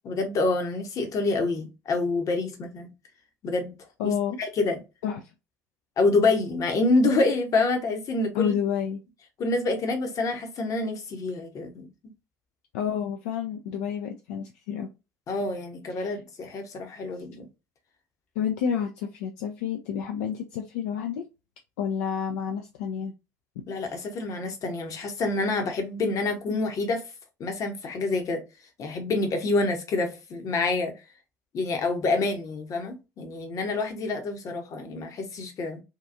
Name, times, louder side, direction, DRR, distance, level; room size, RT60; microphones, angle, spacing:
voice 1, 0.0-2.9 3.4-3.7 4.0-4.1 4.4-4.8 6.0-8.5 9.4-11.9 15.3-17.5 23.7-27.0 27.4-28.4 28.8-30.9 31.5-35.8, left 3 dB, 40° left, 0.8 m, -27 dB
voice 2, 4.0-4.4 5.0-5.2 8.3-9.0 12.7-14.9 15.9-16.2 18.4-21.2 21.8-23.1, left 8 dB, 65° left, 0.3 m, -29 dB
2.8 x 2.3 x 2.3 m
figure-of-eight pair, 60°, 9 cm